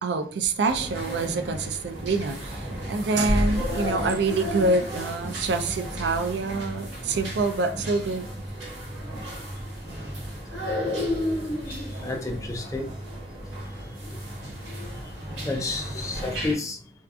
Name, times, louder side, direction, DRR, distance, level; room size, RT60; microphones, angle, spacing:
voice 1, 0.0-8.3, right 3 dB, 70° right, 0.4 m, -26 dB
sound 1, 0.6-16.6, equal, 90° right, 1.0 m, -32 dB
voice 2, 11.6-12.8 14.1-14.2 15.5-16.8, left 2 dB, 20° left, 0.3 m, -31 dB
2.6 x 2.3 x 2.2 m
head